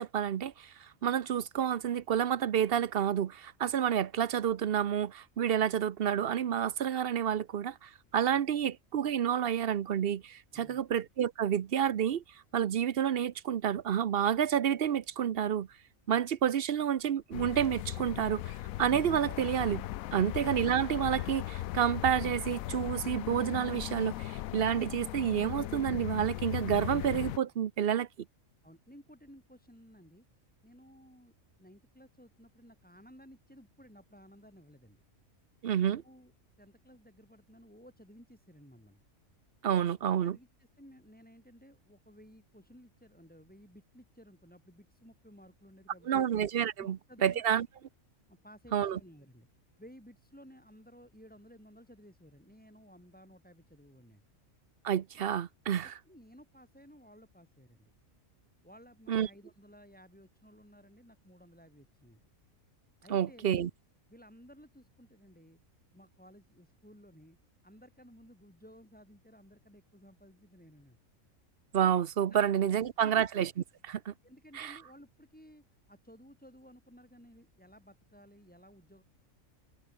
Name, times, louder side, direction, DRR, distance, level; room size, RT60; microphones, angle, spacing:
voice 1, 0.0-12.2 12.5-15.7 16.1-18.5 18.8-19.8 20.1-28.1 35.6-36.0 39.6-40.4 46.1-47.7 48.7-49.0 54.8-55.9 59.1-59.3 63.1-63.7 71.7-73.5 73.8-74.1 74.5-74.8, right 9 dB, 55° right, 0.8 m, -29 dB
voice 2, 10.5-10.8 28.6-30.2 30.6-31.3 31.6-35.0 35.7-36.3 36.6-39.0 40.2-46.3 46.8-47.6 48.3-49.5 49.8-54.2 55.8-57.9 58.6-62.2 63.0-63.5 64.1-65.6 65.9-67.4 67.6-71.0 72.3-72.5 73.0-73.2 74.2-79.0, equal, 5° left, 6.2 m, -56 dB
sound 1, 17.3-27.4, left 15 dB, 85° left, 1.0 m, -38 dB
omnidirectional pair, 1.4 m